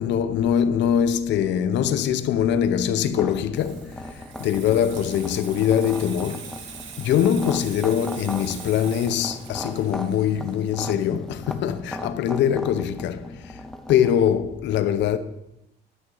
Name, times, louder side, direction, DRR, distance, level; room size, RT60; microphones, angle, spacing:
voice 1, 0.0-6.6 7.0-13.6 13.9-15.2, left 9 dB, 75° left, 0.7 m, -23 dB
sound 1, 3.1-14.3, left 1 dB, ahead, 0.5 m, -38 dB
Water tap faucet / Sink (filling or washing), 3.2-12.5 12.8-13.0, right 7 dB, 90° right, 1.4 m, -43 dB
11.0 x 9.5 x 3.9 m
cardioid pair, 170°, 19 cm